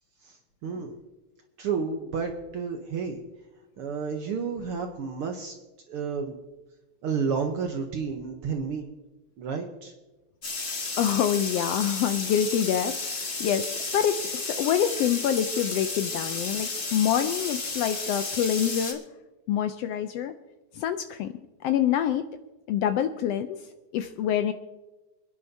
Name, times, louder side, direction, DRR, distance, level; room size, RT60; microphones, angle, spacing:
voice 1, 0.6-1.0 1.6-3.2 3.8-5.6 5.9-6.4 7.0-8.9 9.4-9.9, right 5 dB, 65° right, 4 dB, 1.5 m, -31 dB
sound 1, 10.4-18.9, left 3 dB, 40° left, 0.8 m, -32 dB
voice 2, 11.0-19.0 19.5-20.4 20.7-21.3 21.6-22.3 22.7-23.6 23.9-24.5, left 9 dB, 85° left, 9 dB, 1.4 m, -26 dB
27.5 x 10.5 x 2.7 m, 1.1 s
omnidirectional pair, 3.4 m